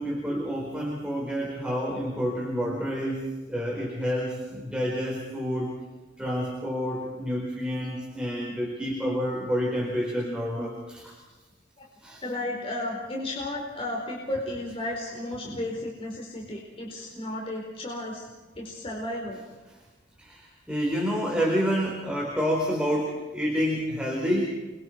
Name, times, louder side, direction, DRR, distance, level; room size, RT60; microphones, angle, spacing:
voice 1, 0.0-5.8 6.2-11.2 12.0-12.2 20.2-24.4, equal, 5° right, -2 dB, 4.6 m, -29 dB
voice 2, 12.2-18.3 18.6-19.4, left 1 dB, 30° left, -2 dB, 4.5 m, -33 dB
29.5 x 24.0 x 4.7 m, 1.2 s
head